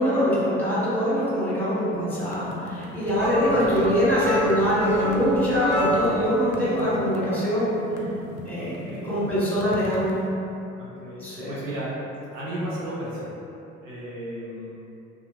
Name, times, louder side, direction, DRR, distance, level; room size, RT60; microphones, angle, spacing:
voice 1, 0.0-7.7 8.4-8.8 9.0-10.3 11.2-11.5, equal, 5° left, -10 dB, 1.3 m, -23 dB
sound 1, 2.1-10.2, left 2 dB, 55° left, 0.4 m, -38 dB
sound 2, 3.2-6.3, right 1 dB, 65° right, 0.9 m, -28 dB
voice 2, 3.4-3.8 8.6-9.2 10.8-11.9 12.3-13.3 13.8-14.7, right 1 dB, 90° right, -8 dB, 0.5 m, -34 dB
2.8 x 2.3 x 2.3 m, 2.8 s
figure-of-eight pair, 50°, 37 cm